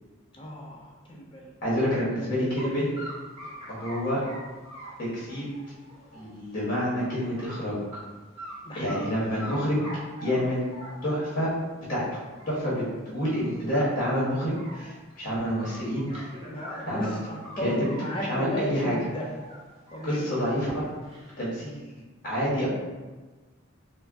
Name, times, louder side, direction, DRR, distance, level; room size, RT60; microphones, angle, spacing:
voice 1, 0.3-0.8 1.1-1.5 1.8-2.8 8.6-9.0 16.5-19.3 19.9-20.4, equal, 25° left, -2 dB, 0.4 m, -35 dB
voice 2, 1.6-2.9 3.7-4.2 5.0-5.5 6.1-7.8 8.7-9.8 10.2-10.6 11.0-11.5 11.9-12.2 12.5-16.3 16.9-17.2 17.6-17.9 18.3-19.0 20.0-20.8 21.4-21.7 22.2-22.7, equal, 40° left, -7 dB, 0.8 m, -28 dB
sound 1, 2.6-2.7 3.0-6.8 7.1-7.6 7.9-8.0 8.4-9.1 9.4-11.3 12.0-12.1 12.4-12.5 12.8-12.9 13.2-13.5 13.7-15.2 15.6-18.1 18.3-20.2 20.6-21.3, equal, 30° right, 0.8 m, -43 dB
3.4 x 2.1 x 2.4 m, 1.3 s
head